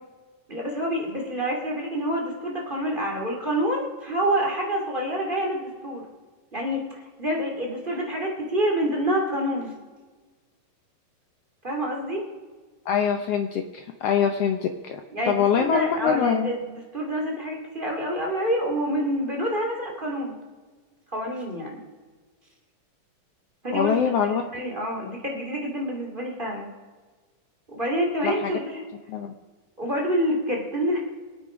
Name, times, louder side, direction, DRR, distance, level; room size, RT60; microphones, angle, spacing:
voice 1, 0.5-6.1 6.5-9.7 11.6-12.3 15.1-20.4 21.1-21.8 23.6-24.0 24.5-26.7 27.7-28.8 29.8-31.0, equal, 15° right, -1 dB, 2.1 m, -27 dB
voice 2, 12.9-15.0 15.3-16.5 23.7-24.4 28.2-28.5 29.1-29.3, left 7 dB, 85° left, 5 dB, 1.3 m, -24 dB
24.0 x 8.9 x 5.0 m, 1.4 s
omnidirectional pair, 3.9 m